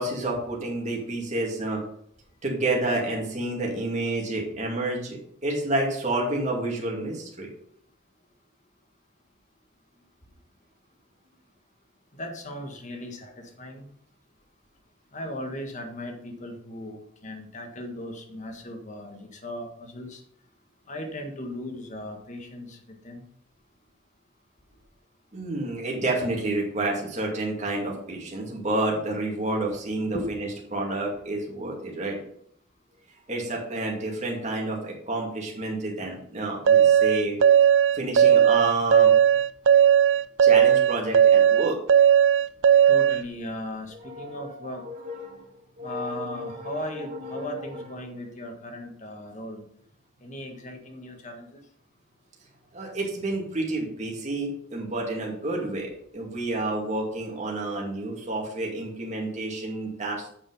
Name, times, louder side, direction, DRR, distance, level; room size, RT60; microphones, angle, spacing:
voice 1, 0.0-1.8 2.4-7.5 25.3-32.2 33.3-37.4 37.9-39.1 40.4-41.8 44.0-45.4 45.8-47.8 52.7-60.3, right 2 dB, 35° right, -1 dB, 2.4 m, -30 dB
voice 2, 12.1-13.9 15.1-20.2 20.9-23.2 30.1-30.3 42.9-44.8 45.8-49.6 50.2-51.6, left 1 dB, 35° left, 3 dB, 1.6 m, -37 dB
sound 1, 36.7-43.2, right 9 dB, 60° right, 0.4 m, -17 dB
8.9 x 5.4 x 5.6 m, 0.65 s
head